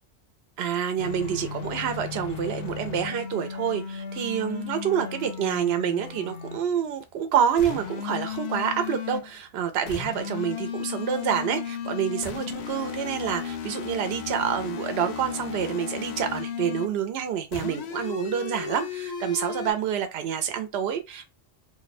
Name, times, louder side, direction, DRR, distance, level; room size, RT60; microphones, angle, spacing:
voice 1, 0.6-21.3, right 8 dB, 75° right, 0.8 m, -28 dB
sound 1, 1.0-6.7 7.6-9.3 9.9-17.0 17.5-19.7, left 8 dB, 85° left, 0.8 m, -35 dB
2.6 x 2.1 x 4.0 m
omnidirectional pair, 1.1 m